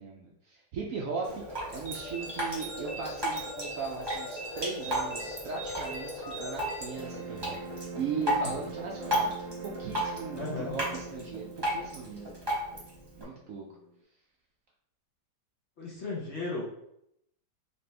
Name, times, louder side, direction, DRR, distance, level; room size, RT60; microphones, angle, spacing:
voice 1, 0.0-9.3 9.6-12.3 13.1-13.6, right 5 dB, 65° right, -1 dB, 0.8 m, -38 dB
Drip, 1.2-13.2, equal, 20° right, 0.8 m, -35 dB
sound 1, 1.9-7.6, right 2 dB, 80° left, 1.5 m, -43 dB
sound 2, 7.0-14.0, right 4 dB, 90° right, 1.3 m, -43 dB
voice 2, 10.3-10.8 15.8-16.7, left 3 dB, 50° left, -4 dB, 0.9 m, -35 dB
4.2 x 2.9 x 3.3 m, 0.77 s
omnidirectional pair, 1.9 m